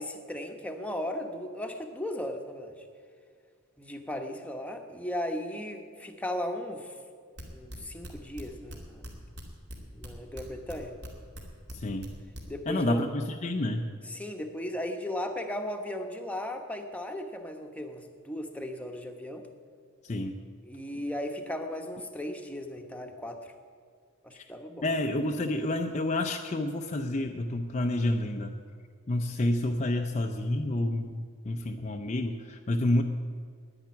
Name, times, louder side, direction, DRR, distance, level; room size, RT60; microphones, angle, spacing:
voice 1, 0.0-2.8 3.8-6.9 7.5-9.0 9.9-11.0 12.5-13.1 14.0-19.5 20.6-23.5 24.2-24.9, left 1 dB, 5° left, 4 dB, 1.0 m, -36 dB
sound 1, 7.4-9.1 9.3-11.1 11.3-12.4, equal, 55° right, 2.3 m, -41 dB
voice 2, 11.7-12.1 12.7-13.9 20.0-20.4 24.3-24.4 24.8-28.5 29.1-33.0, left 1 dB, 35° left, 4 dB, 0.5 m, -29 dB
10.5 x 9.7 x 9.5 m, 2.1 s
head